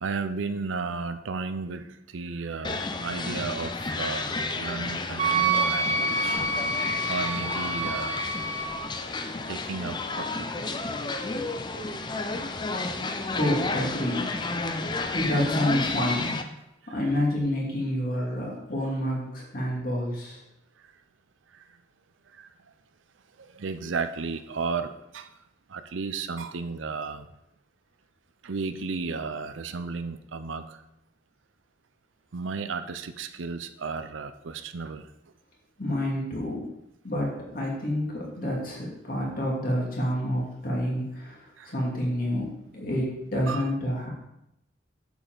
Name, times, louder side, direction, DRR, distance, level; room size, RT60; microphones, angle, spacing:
voice 1, 0.0-6.4 7.1-8.3 9.5-10.5 22.4-22.5 23.4-25.3 25.7-27.3 28.4-30.8 32.3-35.1 41.6-41.7 43.5-43.7, right 4 dB, 90° right, 10 dB, 0.6 m, -33 dB
sound 1, 2.6-16.4, left 3 dB, 25° left, 0.5 m, -31 dB
Wind instrument woodwind instrument, 5.2-8.8, right 3 dB, 35° right, 0.5 m, -27 dB
voice 2, 13.3-14.3 15.1-16.3 16.9-20.4 35.8-36.7 37.0-44.1, left 1 dB, 50° left, -3 dB, 2.5 m, -28 dB
8.1 x 7.1 x 3.9 m, 0.85 s
head